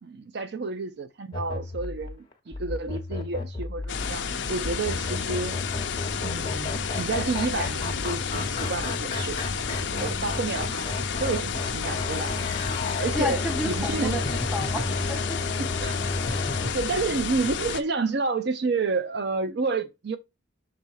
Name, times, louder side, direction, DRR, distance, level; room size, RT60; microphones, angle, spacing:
voice 1, 0.0-5.6 6.2-10.9 11.2-12.4 13.0-14.2 15.6-16.0 16.3-20.2, right 4 dB, 55° right, 0.5 m, -30 dB
sound 1, 1.3-16.7, left 2 dB, 25° left, 1.1 m, -32 dB
sound 2, 3.9-17.8, left 6 dB, 60° left, 0.6 m, -31 dB
voice 2, 9.9-10.2 13.1-15.4, left 1 dB, ahead, 1.3 m, -32 dB
6.8 x 3.6 x 4.7 m
head